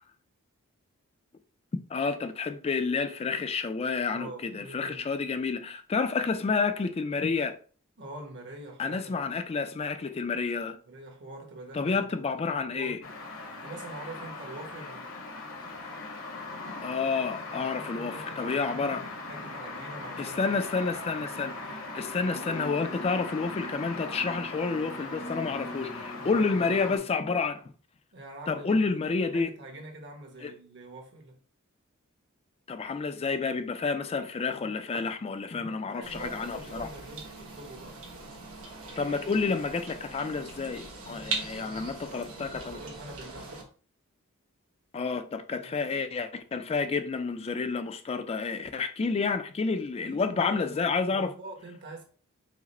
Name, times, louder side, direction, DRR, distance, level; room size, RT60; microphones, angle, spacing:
voice 1, 1.9-7.6 8.8-10.8 11.7-13.0 16.8-19.1 20.2-27.7 28.5-29.5 30.4-30.5 32.7-36.9 39.0-42.8 44.9-51.3, left 4 dB, 25° left, 0.3 m, -30 dB
voice 2, 4.1-5.1 8.0-9.3 10.9-12.0 12.7-13.0 13.6-15.1 17.5-19.0 19.3-20.4 25.4-27.1 28.1-29.0 29.3-31.3 35.6-38.0 41.0-43.6 45.6-46.1 50.0-52.0, right 2 dB, 55° right, 1.0 m, -45 dB
sound 1, 13.0-27.0, left 2 dB, 60° left, 1.0 m, -39 dB
sound 2, 36.0-43.6, right 4 dB, 70° right, 1.2 m, -41 dB
4.8 x 2.0 x 4.2 m
head